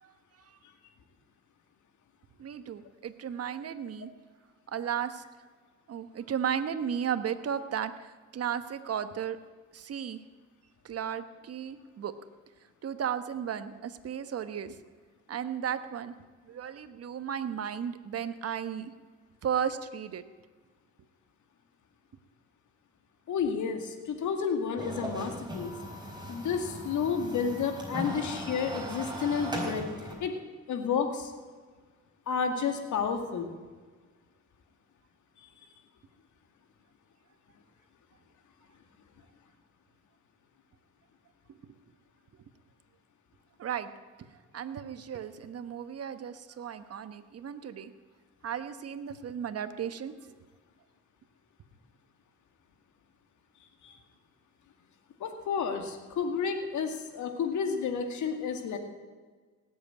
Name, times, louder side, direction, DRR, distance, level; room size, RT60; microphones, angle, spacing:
voice 1, 2.4-4.1 4.7-5.2 5.9-9.4 9.7-10.2 10.8-12.1 12.8-14.8 15.3-16.1 16.5-18.9 19.4-20.2 43.6-43.9 44.5-47.9 48.4-50.1, right 8 dB, 50° right, 11 dB, 1.2 m, -34 dB
voice 2, 23.3-25.7 26.3-29.9 30.2-30.4 30.7-31.3 32.3-33.5 35.4-35.5 53.8-53.9 55.2-58.8, left 6 dB, 75° left, 5 dB, 2.3 m, -31 dB
sound 1, 24.8-30.1, equal, 15° right, 4.6 m, -38 dB
18.0 x 8.1 x 8.9 m, 1.5 s
cardioid pair, 90°, 30 cm